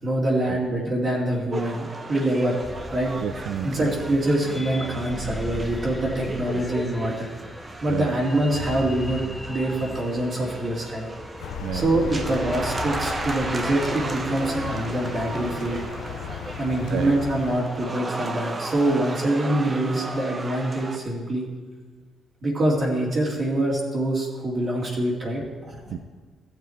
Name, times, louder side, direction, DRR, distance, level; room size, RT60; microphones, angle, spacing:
voice 1, 0.0-2.6 2.9-3.1 3.6-7.3 7.8-9.2 9.5-11.1 11.7-15.8 16.6-21.5 22.4-26.0, right 1 dB, 45° right, -5 dB, 2.2 m, -25 dB
sound 1, 1.5-21.0, right 2 dB, 30° right, 0.9 m, -35 dB
sound 2, 2.6-13.4, left 1 dB, 10° left, 0.6 m, -38 dB
voice 2, 3.2-3.9 7.9-8.1 11.6-11.9 16.9-17.1 25.9-26.0, right 9 dB, 70° right, 10 dB, 0.5 m, -30 dB
sound 3, 11.4-17.6, left 8 dB, 90° left, 0.6 m, -36 dB
14.0 x 7.0 x 4.5 m, 1.4 s
cardioid pair, 90°, 0 cm